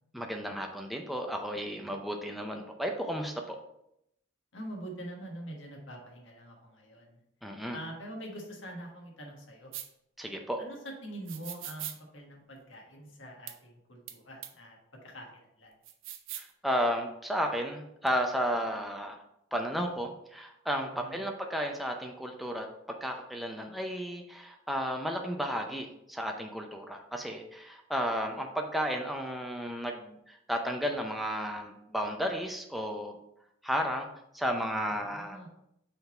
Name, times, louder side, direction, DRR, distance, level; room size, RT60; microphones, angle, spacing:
voice 1, 0.1-3.6 7.4-7.8 10.2-10.6 16.3-19.2 19.5-33.1 33.6-34.1 34.3-35.4, equal, ahead, 2 dB, 0.5 m, -33 dB
voice 2, 4.5-7.2 7.7-9.7 10.6-15.3 15.6-15.7 20.9-21.2 35.0-35.5, right 1 dB, 70° left, 0 dB, 1.6 m, -44 dB
sound 1, 9.7-9.9 11.3-12.0 13.5-13.6 14.1-14.2 14.4-14.5 15.8-16.5, right 11 dB, 85° right, 0.6 m, -40 dB
5.7 x 3.9 x 4.3 m, 0.78 s
head